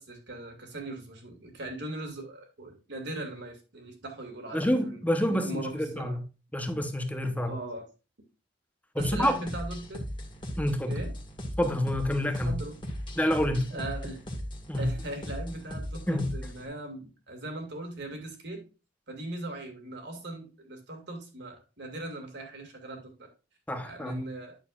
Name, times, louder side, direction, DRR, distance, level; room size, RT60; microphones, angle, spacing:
voice 1, 0.0-6.2 7.5-7.9 9.0-10.0 10.9-11.1 12.4-12.8 13.7-14.2 14.8-18.6 19.1-23.3 23.8-24.6, right 1 dB, 65° right, 2.2 m, -39 dB
voice 2, 4.5-6.2 6.5-7.5 8.9-9.4 10.6-11.0 11.6-12.6 13.2-13.8 14.7-14.9 16.1-16.4 23.7-24.2, left 1 dB, 10° left, 0.9 m, -28 dB
sound 1, 9.0-16.7, equal, 25° left, 1.7 m, -38 dB
9.0 x 6.7 x 2.5 m
head